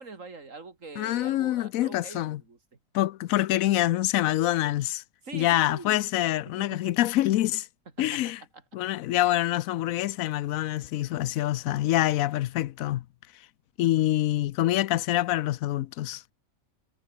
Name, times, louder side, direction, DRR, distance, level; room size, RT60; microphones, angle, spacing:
voice 1, 0.0-2.6 5.2-6.0 6.4-6.8 8.1-8.2, right 4 dB, 70° right, 3.1 m, -43 dB
voice 2, 1.0-2.4 2.9-5.0 5.3-7.7 8.0-8.4 8.7-13.0 13.8-16.2, left 14 dB, 80° left, 1.0 m, -26 dB
omnidirectional pair, 1.4 m